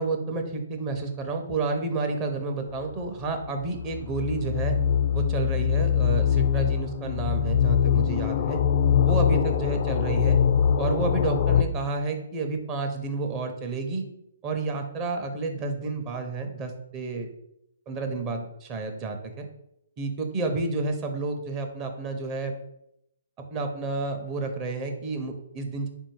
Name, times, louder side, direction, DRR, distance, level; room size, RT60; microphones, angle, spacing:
voice 1, 0.0-4.8 5.1-8.6 9.0-10.4 10.8-14.1 14.4-17.3 17.9-19.5 20.0-22.5 23.5-25.9, right 3 dB, 25° right, 4 dB, 0.7 m, -30 dB
sound 1, 2.8-11.6, left 8 dB, 45° left, 0.3 m, -23 dB
4.0 x 2.6 x 4.6 m, 0.79 s
hypercardioid pair, 135°, 0 cm